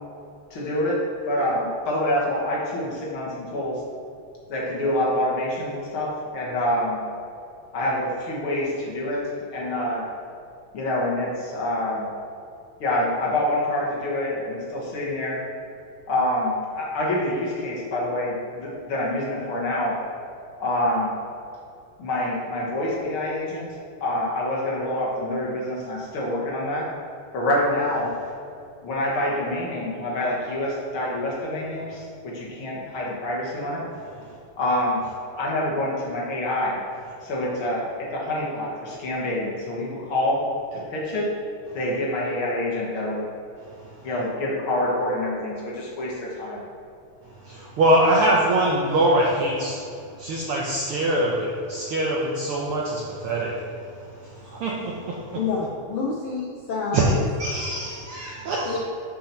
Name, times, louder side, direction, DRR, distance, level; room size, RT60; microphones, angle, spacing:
voice 1, 0.5-3.8 4.5-7.0 7.7-10.1 10.7-12.1 12.8-15.4 16.1-20.0 20.6-21.1 22.0-23.7 24.0-26.9 27.3-28.1 28.8-33.9 34.6-35.0 35.4-36.8 37.2-41.3 41.7-43.2 44.0-46.6, left 1 dB, 55° left, -4 dB, 1.8 m, -26 dB
voice 2, 47.4-49.8 50.2-53.5 54.4-55.4 56.9-57.0 57.4-58.8, right 1 dB, 70° right, -3 dB, 1.3 m, -23 dB
voice 3, 55.3-57.2 58.6-58.8, left 4 dB, 90° left, -2 dB, 1.2 m, -28 dB
6.3 x 5.9 x 5.7 m, 2.4 s
omnidirectional pair, 3.4 m